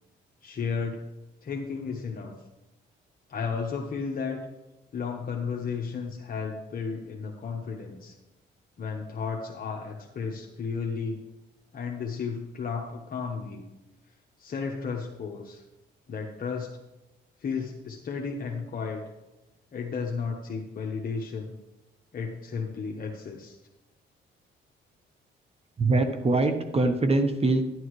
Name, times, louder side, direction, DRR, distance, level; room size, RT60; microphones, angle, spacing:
voice 1, 0.4-1.0 1.4-2.3 3.3-4.4 4.9-8.1 8.8-11.2 11.7-13.6 14.4-15.6 16.1-16.7 17.4-19.0 19.7-21.5 22.1-23.6, left 5 dB, 45° left, 0 dB, 1.2 m, -33 dB
voice 2, 25.8-27.7, right 2 dB, 30° right, 7 dB, 1.1 m, -23 dB
11.0 x 10.5 x 3.2 m, 1.0 s
cardioid pair, 90°, 20 cm